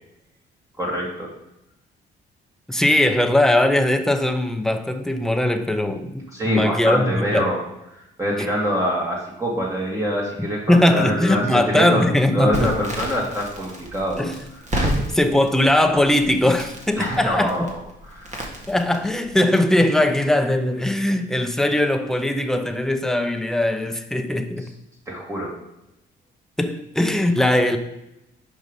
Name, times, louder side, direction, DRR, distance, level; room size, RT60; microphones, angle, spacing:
voice 1, 0.8-1.3 6.3-7.6 7.9-12.1 12.3-14.3 14.7-15.0 17.0-17.8 18.1-18.3 25.1-25.5, equal, 15° right, -3 dB, 1.7 m, -25 dB
voice 2, 2.7-7.5 8.4-8.5 10.4-12.8 14.2-14.4 15.0-17.7 18.7-24.7 26.6-27.8, left 1 dB, ahead, 7 dB, 0.7 m, -20 dB
Crackle, 12.5-19.3, equal, 35° right, 1.6 m, -31 dB
5.3 x 4.8 x 5.2 m, 0.87 s
cardioid pair, 90°, 20 cm